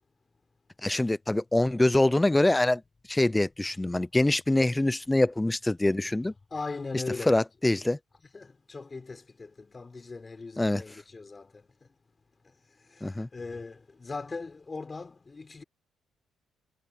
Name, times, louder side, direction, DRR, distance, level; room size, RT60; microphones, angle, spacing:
voice 1, 0.8-2.8 3.1-6.3 7.3-8.0 10.6-10.8 13.0-13.3, left 1 dB, 10° left, 0.7 m, -24 dB
voice 2, 6.5-7.4 8.3-11.7 13.0-15.6, left 3 dB, 30° left, 4.6 m, -39 dB
cardioid pair, 90°, 0 cm